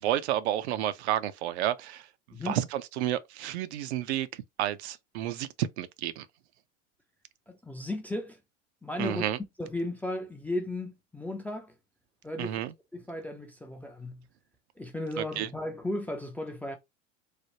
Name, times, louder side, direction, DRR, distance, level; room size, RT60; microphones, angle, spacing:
voice 1, 0.0-6.3 9.0-9.4 12.4-12.7 15.2-15.5, right 12 dB, 60° right, 0.5 m, -31 dB
voice 2, 7.5-8.4 8.8-9.3 9.6-11.8 12.2-12.5 12.9-14.2 14.8-16.8, left 1 dB, 5° left, 0.3 m, -35 dB
3.2 x 2.0 x 2.7 m
hypercardioid pair, 85°, 37 cm